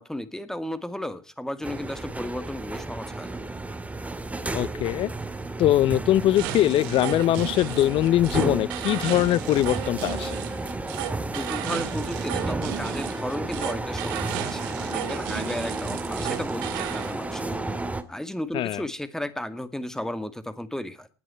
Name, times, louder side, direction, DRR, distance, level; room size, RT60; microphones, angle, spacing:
voice 1, 0.0-3.4 11.3-17.5 18.1-21.1, left 1 dB, 5° left, 2.1 m, -34 dB
sound 1, 1.6-18.0, right 2 dB, 10° right, 2.0 m, -32 dB
voice 2, 4.5-5.1 5.6-10.4 18.5-18.8, left 14 dB, 45° left, 0.6 m, -22 dB
sound 2, 6.4-17.2, right 13 dB, 65° right, 1.8 m, -34 dB
19.5 x 9.1 x 4.5 m
hypercardioid pair, 75°, 12 cm